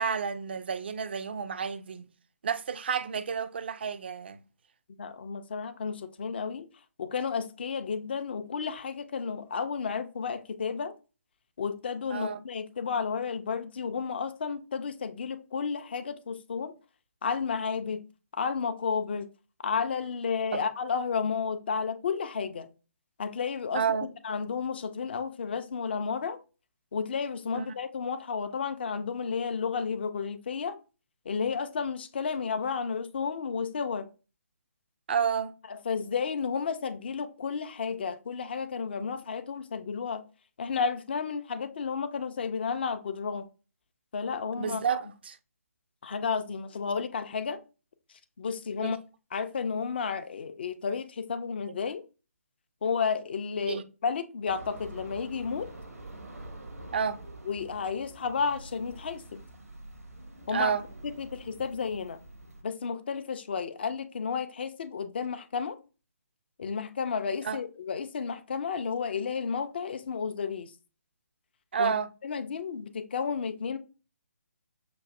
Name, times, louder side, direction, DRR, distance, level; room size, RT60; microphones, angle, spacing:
voice 1, 0.0-2.1 2.4-4.4 12.1-12.4 20.5-20.6 23.7-24.1 27.5-27.7 35.1-35.5 44.6-45.4 48.8-49.0 53.7-53.8 56.9-57.2 60.5-60.8 67.4-67.6 71.7-72.1, right 7 dB, 40° right, 0.4 m, -30 dB
voice 2, 5.0-6.7 7.0-10.9 11.6-16.7 17.2-18.0 18.3-19.3 19.6-22.7 23.2-26.4 26.9-30.8 31.3-34.1 35.7-40.2 40.6-43.5 44.1-45.0 46.0-47.6 48.4-49.0 49.3-52.0 52.8-55.7 57.4-59.4 60.5-60.7 61.2-62.2 62.6-65.8 66.6-70.7 71.8-71.9 72.2-73.8, left 6 dB, 40° left, 0.4 m, -32 dB
sound 1, 54.5-62.6, right 1 dB, 75° right, 0.8 m, -46 dB
6.0 x 2.5 x 2.4 m
figure-of-eight pair, 145°, 8 cm